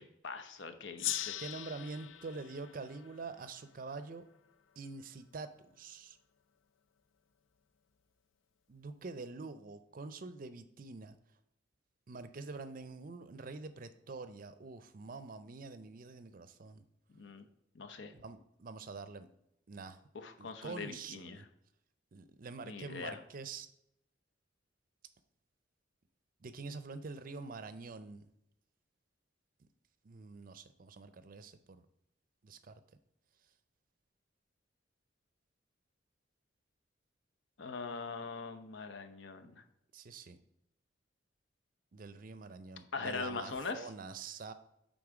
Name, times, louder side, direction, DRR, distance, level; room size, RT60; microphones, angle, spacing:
voice 1, 0.2-1.4 17.1-17.5 17.7-18.1 20.1-21.4 22.6-23.2 37.6-39.6 42.9-43.9, left 4 dB, 70° left, 8 dB, 0.8 m, -42 dB
Gong, 1.0-4.1, left 12 dB, 90° left, 0.4 m, -41 dB
voice 2, 1.4-4.2 4.8-5.5 5.8-6.2 8.7-11.2 12.1-16.8 18.1-19.3 19.7-20.0 20.4-21.5 22.1-23.7 26.4-28.3 30.0-31.8 32.4-32.8 39.9-40.4 41.9-44.5, right 3 dB, 45° right, 11 dB, 0.5 m, -46 dB
8.7 x 3.8 x 4.8 m, 0.81 s
head